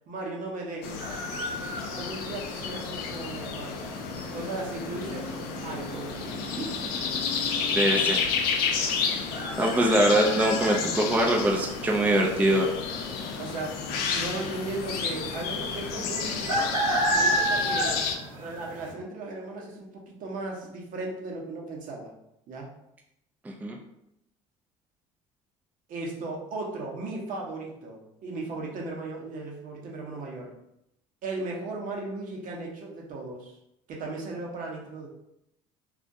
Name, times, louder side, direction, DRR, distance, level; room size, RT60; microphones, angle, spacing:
voice 1, 0.1-1.1 1.9-3.8 4.3-5.3 5.6-6.7 13.4-16.8 17.1-18.0 18.4-22.1 22.5-22.7 25.9-30.5 31.2-33.6 33.9-35.1, right 2 dB, 50° right, -1 dB, 0.8 m, -36 dB
sound 1, 0.8-18.2, left 6 dB, 65° left, 0.4 m, -31 dB
sound 2, 1.0-18.9, right 1 dB, 85° right, 0.8 m, -34 dB
voice 2, 7.7-8.2 8.7-9.2 9.6-12.7 23.5-23.8, right 1 dB, 10° right, 0 dB, 0.4 m, -23 dB
2.3 x 2.1 x 2.6 m, 0.81 s
hypercardioid pair, 70°, 17 cm